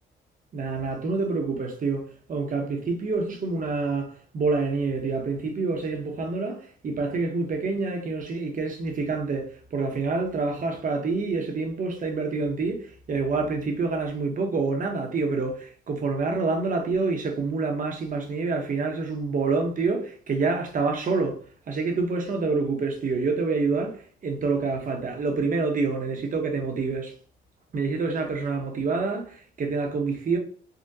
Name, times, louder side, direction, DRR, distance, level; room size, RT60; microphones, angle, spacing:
voice 1, 0.5-9.5 9.7-21.4 21.7-24.0 24.2-27.1 27.7-30.4, right 4 dB, 40° right, 0.8 m, -27 dB
3.7 x 2.1 x 2.6 m
cardioid pair, 90°, 20 cm